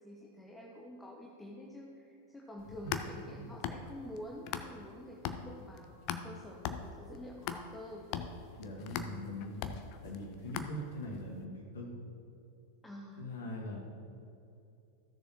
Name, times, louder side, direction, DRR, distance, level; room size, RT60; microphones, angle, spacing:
voice 1, 0.0-8.0 12.8-13.3, left 1 dB, 10° left, -2 dB, 0.9 m, -48 dB
sound 1, 2.6-4.9 5.3-11.2, left 8 dB, 40° left, 0.5 m, -40 dB
voice 2, 8.6-12.0 13.2-13.8, left 1 dB, 65° left, 0 dB, 1.7 m, -42 dB
14.5 x 6.8 x 3.1 m, 2.7 s
figure-of-eight pair, 90°, 0 cm